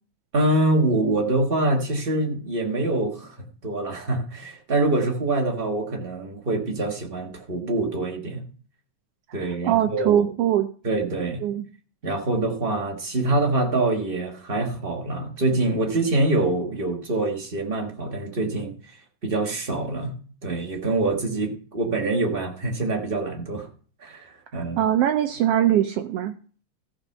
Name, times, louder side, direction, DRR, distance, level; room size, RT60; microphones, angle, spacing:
voice 1, 0.3-3.3 3.6-8.4 9.3-10.3 10.8-11.4 12.0-18.7 19.2-20.1 20.4-23.7 24.0-24.8, right 2 dB, 45° right, 2 dB, 0.7 m, -25 dB
voice 2, 9.3-10.7 11.4-11.7 24.5-26.3, right 11 dB, 85° right, 8 dB, 1.3 m, -22 dB
14.5 x 5.1 x 5.4 m, 0.42 s
omnidirectional pair, 3.3 m